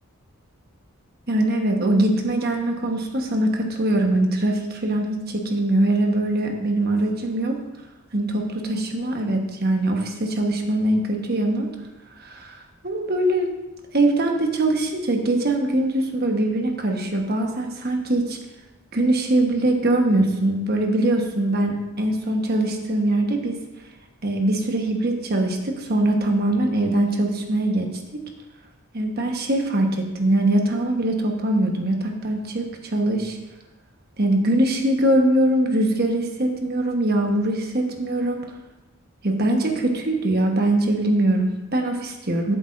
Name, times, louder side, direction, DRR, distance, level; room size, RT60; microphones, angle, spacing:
voice 1, 1.3-7.6 8.1-11.7 12.2-12.6 12.8-13.5 13.9-18.4 18.9-23.6 24.2-28.2 28.9-33.4 34.2-38.5 39.2-42.6, right 1 dB, 45° right, 3 dB, 1.2 m, -22 dB
13.0 x 7.9 x 2.6 m, 1.0 s
head